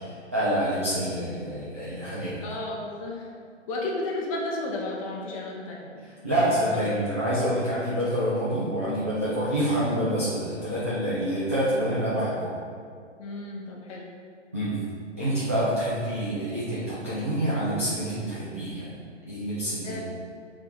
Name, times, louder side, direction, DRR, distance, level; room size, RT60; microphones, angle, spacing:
voice 1, 0.0-2.5 6.0-12.5 13.9-14.0 14.5-14.8 15.2-19.0 19.3-20.0, equal, 15° right, -11 dB, 0.4 m, -27 dB
voice 2, 2.4-3.3 3.7-6.0 6.6-6.8 13.2-14.1 19.8-20.0, left 2 dB, 30° left, -2 dB, 1.0 m, -33 dB
6.7 x 3.8 x 4.7 m, 2.2 s
figure-of-eight pair, 130°, 37 cm